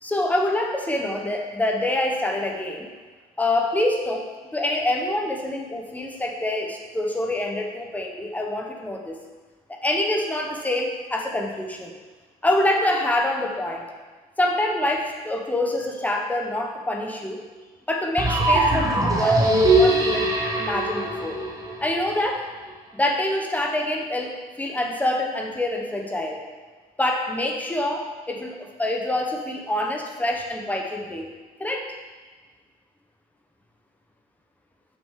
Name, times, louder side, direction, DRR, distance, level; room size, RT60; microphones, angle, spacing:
voice 1, 0.0-2.9 3.4-9.2 9.8-11.9 12.4-13.8 14.4-17.4 17.9-20.3 20.6-21.4 21.8-22.5 22.9-26.4 27.0-31.3 31.6-31.9, left 1 dB, 10° left, 1 dB, 0.9 m, -26 dB
sound 1, 18.2-22.1, right 1 dB, 20° right, 1.0 m, -21 dB
6.2 x 6.0 x 3.7 m, 1.4 s
cardioid pair, 110°, 17 cm